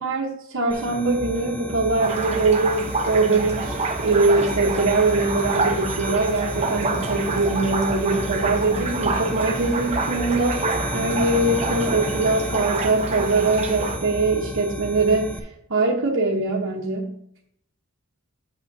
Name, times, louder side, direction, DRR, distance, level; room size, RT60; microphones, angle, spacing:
voice 1, 0.0-10.6 10.9-15.3 15.7-17.2, right 3 dB, 65° right, -3 dB, 0.9 m, -22 dB
sound 1, 0.7-15.4, equal, 5° left, 0.6 m, -32 dB
sound 2, 2.0-14.0, right 3 dB, 30° right, 0.7 m, -28 dB
8.4 x 6.8 x 2.7 m, 0.70 s
head